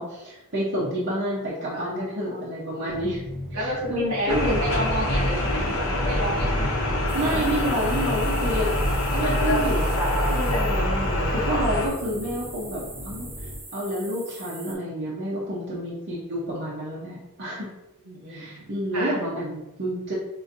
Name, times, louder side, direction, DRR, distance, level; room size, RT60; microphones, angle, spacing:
voice 1, 0.0-3.2 3.5-4.6 7.1-8.7 9.1-13.3 13.7-17.7 18.3-20.1, equal, 50° right, -7 dB, 0.8 m, -29 dB
voice 2, 1.7-2.1 2.8-3.0 3.5-5.7 6.0-6.8 7.2-7.8 12.1-12.3 18.0-18.7 18.9-19.1, right 1 dB, 75° right, -3 dB, 1.5 m, -31 dB
sound 1, 2.9-13.6, equal, ahead, 0.6 m, -39 dB
sound 2, 4.3-11.9, left 1 dB, 70° left, 0.7 m, -24 dB
sound 3, 7.1-14.7, right 2 dB, 25° right, 1.5 m, -44 dB
5.6 x 2.6 x 2.6 m, 0.96 s
head